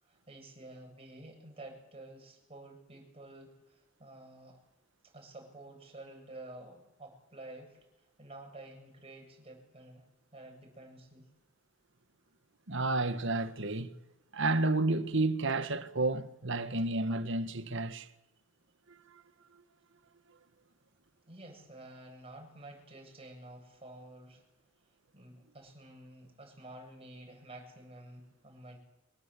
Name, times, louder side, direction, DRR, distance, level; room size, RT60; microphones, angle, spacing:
voice 1, 0.0-4.6 5.0-10.1 10.3-11.3 21.2-24.4 25.1-28.8, right 1 dB, 30° right, 8.0 m, -51 dB
voice 2, 12.7-14.0 14.3-18.1, right 2 dB, 65° right, 1.7 m, -31 dB
25.0 x 22.0 x 8.6 m
head